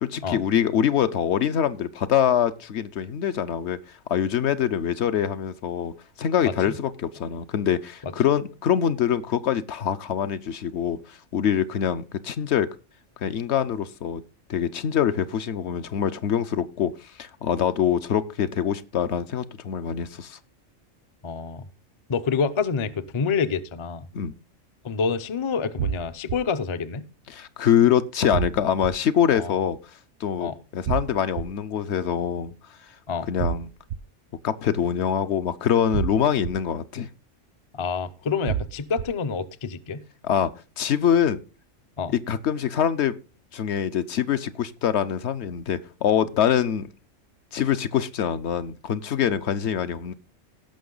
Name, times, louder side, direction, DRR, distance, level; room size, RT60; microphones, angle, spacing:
voice 1, 0.0-3.8 4.1-5.9 6.2-12.7 13.2-14.2 14.5-20.4 24.1-24.3 27.3-29.8 30.2-32.5 33.3-33.7 34.4-37.1 40.2-40.5 40.8-41.4 42.3-43.2 43.5-46.9 47.5-50.1, left 9 dB, 65° left, 13 dB, 0.9 m, -24 dB
voice 2, 6.4-6.7 8.0-8.1 21.2-21.7 22.1-24.1 24.8-27.0 29.4-29.5 30.4-30.5 33.1-33.3 37.7-40.0 42.0-42.1, left 5 dB, 45° left, 12 dB, 0.4 m, -27 dB
sound 1, 25.8-26.4 28.3-28.9 30.9-31.4 33.4-34.0 35.9-36.5 38.5-39.0, right 9 dB, 80° right, 1.1 m, -27 dB
17.0 x 6.0 x 3.8 m, 0.33 s
omnidirectional pair, 1.3 m